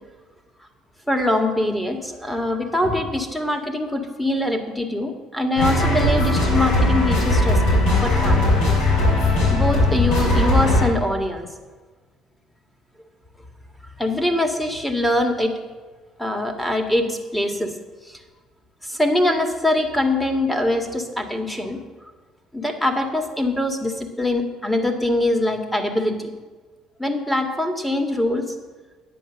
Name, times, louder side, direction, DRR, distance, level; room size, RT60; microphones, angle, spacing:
voice 1, 1.1-7.6 8.0-8.5 9.5-11.5 14.0-15.5 16.2-17.7 18.1-18.2 18.8-21.8 22.5-26.3 27.0-28.4, left 1 dB, 5° left, 4 dB, 2.0 m, -23 dB
sound 1, 5.6-10.9, left 1 dB, 75° left, 4.4 m, -18 dB
10.0 x 8.0 x 6.3 m, 1.3 s
hypercardioid pair, 65°, 0 cm